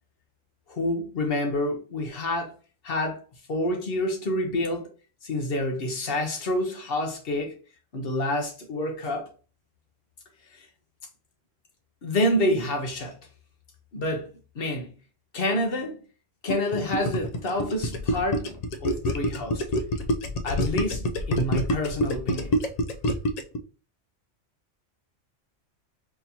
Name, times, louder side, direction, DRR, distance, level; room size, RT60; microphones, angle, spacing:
voice 1, 0.7-2.5 2.8-3.2 3.5-4.9 5.2-7.5 7.9-9.3 10.5-10.7 12.0-13.2 13.9-14.3 14.5-14.9 15.3-16.0 16.4-18.5 18.8-19.6 20.4-22.5, left 1 dB, 55° left, 1.0 m, -28 dB
Gurgling, 16.5-23.6, left 1 dB, 70° left, 0.3 m, -26 dB
4.3 x 2.8 x 2.7 m
omnidirectional pair, 1.2 m